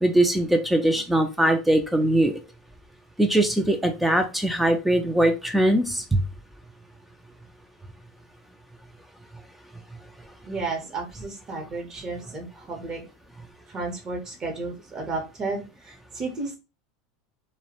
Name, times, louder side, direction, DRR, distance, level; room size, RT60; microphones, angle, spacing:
voice 1, 0.0-2.3 3.2-6.2, right 1 dB, 5° right, 5 dB, 0.3 m, -21 dB
voice 2, 10.4-13.0 13.7-16.6, right 3 dB, 35° right, 1 dB, 0.7 m, -33 dB
2.2 x 2.0 x 2.8 m, 0.30 s
hypercardioid pair, 90°, 2 cm